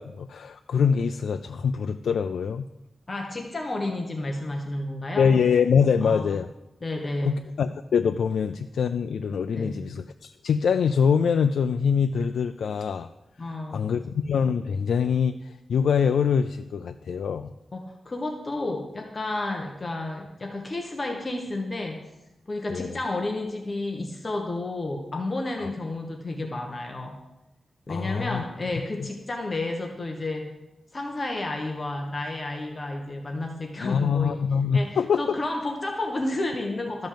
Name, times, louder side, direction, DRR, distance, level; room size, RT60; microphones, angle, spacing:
voice 1, 0.0-2.7 5.2-6.5 7.2-13.1 13.4-17.5 22.7-23.0 25.6-25.7 27.9-28.4 33.8-35.2, left 6 dB, 85° left, 8 dB, 0.4 m, -24 dB
voice 2, 3.1-5.3 6.0-6.3 6.8-7.4 9.5-9.9 13.4-14.0 17.7-22.0 22.5-27.2 27.9-30.5 30.9-34.4 34.7-37.1, left 2 dB, 25° left, 2 dB, 1.1 m, -31 dB
12.5 x 5.3 x 7.5 m, 0.94 s
wide cardioid pair, 170°, 0 cm